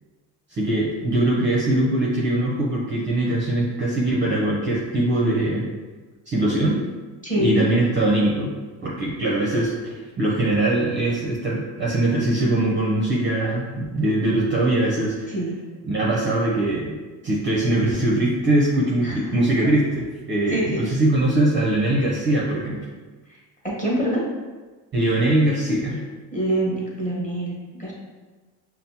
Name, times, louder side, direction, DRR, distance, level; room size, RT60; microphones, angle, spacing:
voice 1, 0.5-5.7 6.3-6.8 7.3-8.5 8.8-15.3 15.9-16.9 17.2-22.9 24.9-26.0, right 1 dB, 25° right, -4 dB, 0.5 m, -22 dB
voice 2, 7.2-7.7 15.3-15.5 19.0-19.1 20.5-20.8 23.8-24.2 26.3-27.5 27.8-27.9, equal, 15° left, -6 dB, 1.2 m, -24 dB
5.5 x 2.0 x 2.7 m, 1.3 s
cardioid pair, 120°, 45 cm